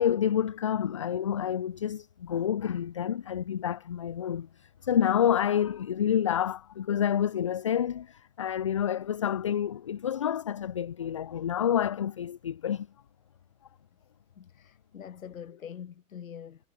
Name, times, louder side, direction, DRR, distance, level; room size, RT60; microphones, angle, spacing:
voice 1, 0.0-12.9, left 9 dB, 25° left, 0.4 m, -28 dB
voice 2, 14.4-16.6, left 8 dB, 65° left, 7.3 m, -44 dB
hypercardioid pair, 130°, 44 cm